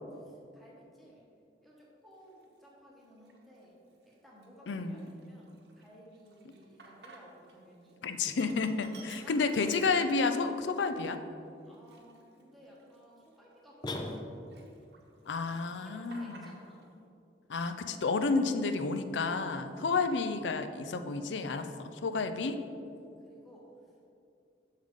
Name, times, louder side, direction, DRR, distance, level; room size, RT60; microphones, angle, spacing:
voice 1, 0.1-1.3 1.6-3.8 4.1-8.0 8.9-9.4 11.6-14.7 15.5-16.8 19.4-20.4 23.2-23.7, equal, ahead, -5 dB, 1.3 m, -57 dB
Sink (filling or washing), 2.3-2.4 3.1-3.6 4.0-4.1 4.4-7.6 7.9-10.4 10.9-11.0 11.6-14.2 14.5-15.3 15.5-16.9, right 3 dB, 65° right, 0.9 m, -55 dB
voice 2, 4.7-5.1 8.0-11.2 15.3-16.5 17.5-22.6, left 4 dB, 85° left, 9 dB, 0.5 m, -31 dB
sound 1, 13.8-14.7, left 1 dB, 25° left, 0.5 m, -38 dB
7.4 x 6.5 x 3.7 m, 2.5 s
head